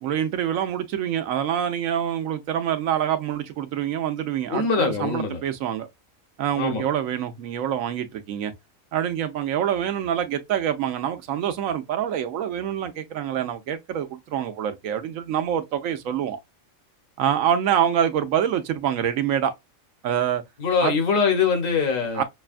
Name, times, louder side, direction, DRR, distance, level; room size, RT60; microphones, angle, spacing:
voice 1, 0.0-5.9 6.4-8.5 8.9-16.4 17.2-19.5 20.0-20.4 20.8-21.0 22.1-22.2, right 9 dB, 75° right, 1.0 m, -26 dB
voice 2, 4.5-5.4 6.6-6.8 20.6-22.2, left 5 dB, 75° left, 1.4 m, -23 dB
6.1 x 2.2 x 2.4 m
omnidirectional pair, 1.4 m